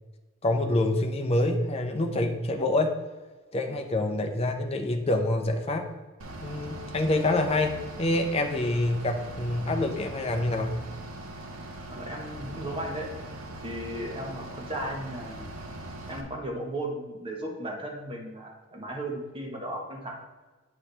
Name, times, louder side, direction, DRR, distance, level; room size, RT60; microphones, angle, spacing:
voice 1, 0.4-2.9 3.5-5.9 6.4-10.7, left 2 dB, 30° left, 3 dB, 0.7 m, -26 dB
Bus / Idling, 6.2-16.2, right 1 dB, 90° right, 0.9 m, -41 dB
voice 2, 11.8-13.1 13.6-15.5 16.1-20.2, right 1 dB, 25° right, -1 dB, 1.3 m, -35 dB
8.5 x 4.7 x 3.4 m, 1.3 s
head